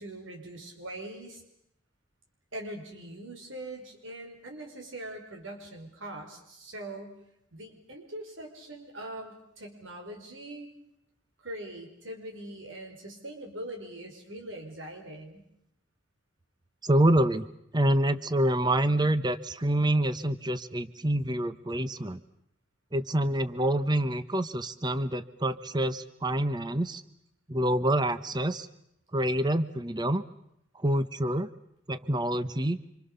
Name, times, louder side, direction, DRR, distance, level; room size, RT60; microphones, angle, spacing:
voice 1, 0.0-1.4 2.5-7.2 7.5-10.7 11.4-15.4, right 1 dB, 80° right, 3 dB, 5.3 m, -42 dB
voice 2, 16.8-17.5 17.7-22.2 22.9-27.0 27.5-28.7 29.1-30.2 30.7-31.5 31.9-32.8, right 1 dB, 20° right, 12 dB, 1.0 m, -27 dB
27.5 x 26.5 x 6.9 m, 0.78 s
head